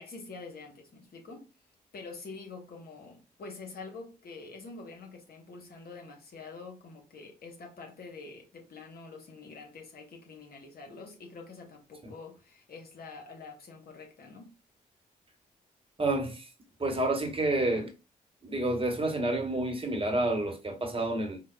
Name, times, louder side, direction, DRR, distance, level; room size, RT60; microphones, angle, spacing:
voice 1, 0.0-1.5 1.9-14.5, left 4 dB, 55° left, 1.0 m, -46 dB
voice 2, 16.0-16.5 16.8-17.9 18.4-21.4, right 2 dB, 30° right, 1.1 m, -29 dB
4.6 x 2.2 x 2.2 m
hypercardioid pair, 40°, 19 cm